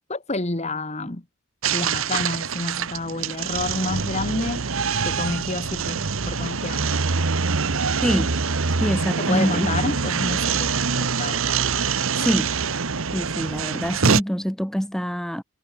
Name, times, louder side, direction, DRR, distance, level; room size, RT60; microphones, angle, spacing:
voice 1, 0.1-1.2 1.7-4.7 5.0-6.9 9.2-11.5, left 2 dB, 30° left, 1.3 m, -29 dB
sound 1, 1.6-14.2, right 5 dB, 65° right, 1.2 m, -24 dB
voice 2, 8.0-8.4 8.8-9.7 12.2-12.6 13.1-15.4, equal, ahead, 1.4 m, -25 dB
head